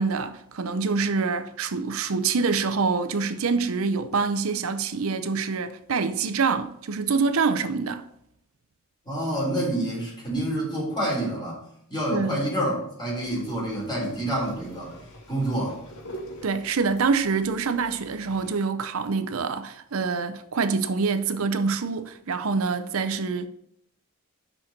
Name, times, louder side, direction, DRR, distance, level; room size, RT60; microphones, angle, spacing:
voice 1, 0.0-8.0 12.1-12.4 16.4-23.5, right 4 dB, 75° right, 0.6 m, -26 dB
voice 2, 9.1-11.6 11.9-14.9 15.3-15.8, right 1 dB, 20° left, 3.7 m, -28 dB
sound 1, 13.1-18.5, equal, 90° left, 2.0 m, -45 dB
6.1 x 6.0 x 6.5 m
head